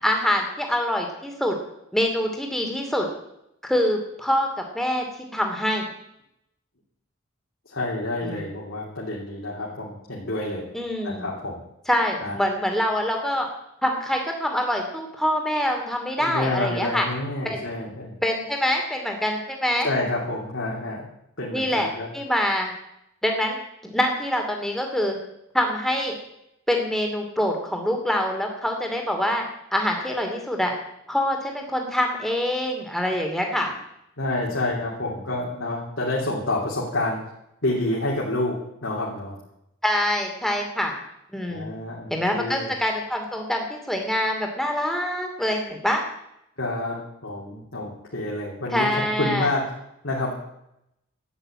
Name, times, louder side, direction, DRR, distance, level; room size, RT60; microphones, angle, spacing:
voice 1, 0.0-1.6 1.9-3.1 3.7-4.5 4.7-5.0 5.3-5.9 8.2-8.4 10.7-11.3 11.9-13.5 13.8-17.1 17.4-17.6 18.2-19.9 21.5-21.9 22.1-22.7 23.2-25.2 25.5-26.1 26.7-29.4 29.7-30.7 31.1-33.7 39.8-40.9 41.3-41.7 42.1-46.0 48.7-49.5, left 1 dB, ahead, 2 dB, 2.6 m, -25 dB
voice 2, 7.7-10.7 11.0-11.6 12.2-12.3 16.2-18.1 19.8-21.1 21.4-22.1 34.2-37.2 37.6-39.4 41.5-42.7 46.6-49.7 50.0-50.3, left 2 dB, 60° left, -4 dB, 3.1 m, -28 dB
12.5 x 9.8 x 8.8 m, 0.81 s
head